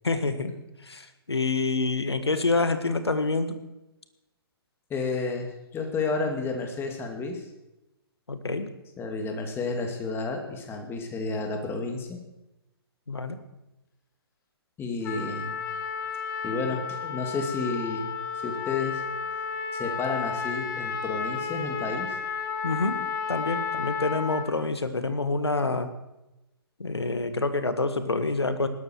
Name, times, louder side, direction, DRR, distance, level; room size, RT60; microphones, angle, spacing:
voice 1, 0.0-0.5 0.9-3.6 8.3-8.7 13.1-13.4 22.6-23.0 23.3-25.9 26.8-28.7, left 3 dB, 90° left, 10 dB, 1.7 m, -27 dB
voice 2, 4.9-7.4 9.0-12.2 14.8-15.6 16.4-19.0 19.7-22.2, left 4 dB, 15° left, 4 dB, 2.6 m, -31 dB
Trumpet, 15.0-24.5, left 6 dB, 50° left, 2.3 m, -32 dB
20.0 x 12.5 x 4.6 m, 0.96 s
figure-of-eight pair, 125°, 13 cm